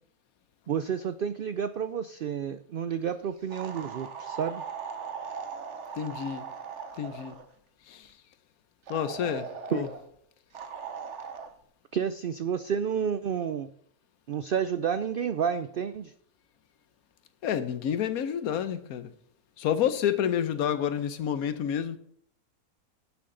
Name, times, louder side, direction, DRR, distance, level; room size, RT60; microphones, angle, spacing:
voice 1, 0.7-4.6 9.7-9.8 11.9-13.7 14.3-16.1, right 7 dB, 80° right, 0.4 m, -30 dB
sound 1, 3.5-7.5 8.9-10.0 10.5-11.5, right 6 dB, 55° right, 1.2 m, -39 dB
voice 2, 6.0-6.4 7.0-7.3 7.9-8.0 8.9-9.9 17.4-19.1 19.6-22.0, left 9 dB, 80° left, 1.2 m, -29 dB
11.5 x 9.9 x 3.8 m
omnidirectional pair, 1.5 m